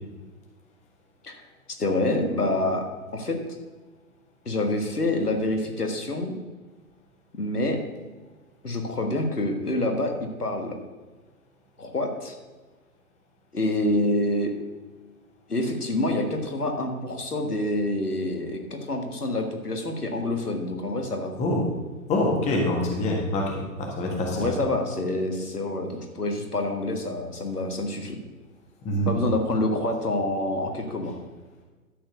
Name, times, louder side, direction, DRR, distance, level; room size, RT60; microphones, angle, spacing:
voice 1, 1.7-2.8 3.1-3.4 4.5-6.3 7.4-7.8 8.6-10.7 11.8-12.4 13.5-14.5 15.5-21.3 24.3-28.2 29.1-31.2, left 1 dB, 80° left, 3 dB, 1.9 m, -27 dB
voice 2, 22.1-24.6 28.8-29.1, left 1 dB, 15° left, 0 dB, 1.5 m, -25 dB
12.5 x 4.6 x 6.9 m, 1.3 s
figure-of-eight pair, 120°, 45 cm